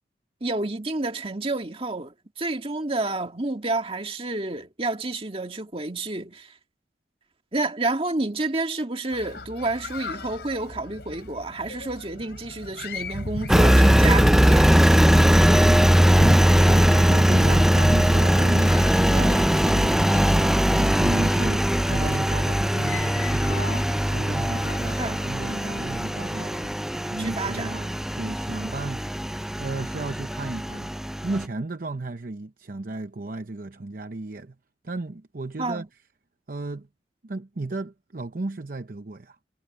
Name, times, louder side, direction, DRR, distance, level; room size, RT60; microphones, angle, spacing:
voice 1, 0.4-6.5 7.5-14.8 19.1-19.4 25.0-25.2 27.2-27.8 35.6-35.9, right 2 dB, 30° right, 2.0 m, -29 dB
sound 1, 9.1-26.7, left 2 dB, 70° left, 3.6 m, -38 dB
Engine, 13.5-31.4, equal, 5° right, 0.4 m, -20 dB
voice 2, 15.4-15.9 16.6-23.8 24.1-26.8 27.0-30.9 31.2-34.5 34.8-35.8 36.5-36.9 37.2-39.4, right 2 dB, 50° right, 0.8 m, -34 dB
head